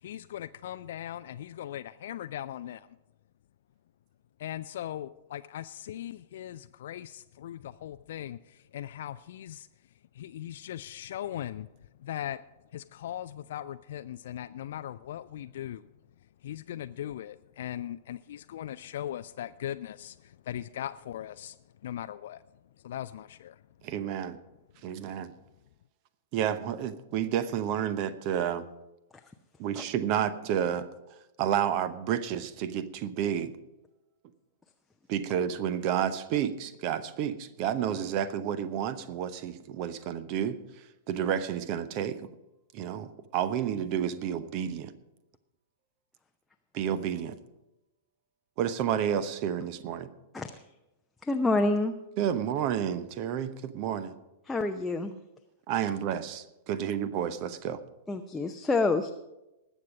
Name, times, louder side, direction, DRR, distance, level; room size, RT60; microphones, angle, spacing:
voice 1, 0.0-2.9 4.4-9.7 10.1-11.7 12.0-12.4 12.7-15.9 16.4-22.4 22.8-23.6, left 11 dB, 55° left, 12 dB, 0.3 m, -39 dB
voice 2, 23.8-24.4 24.8-25.3 26.3-28.7 29.6-30.9 31.4-33.5 35.1-42.2 42.7-44.9 46.7-47.4 48.6-50.1 52.2-54.1 55.7-57.8, right 9 dB, 40° right, 15 dB, 0.8 m, -30 dB
voice 3, 51.2-51.9 54.5-55.2 58.1-59.1, left 2 dB, 10° left, 4 dB, 0.6 m, -27 dB
19.5 x 7.3 x 5.2 m, 0.95 s
figure-of-eight pair, 100°, 0 cm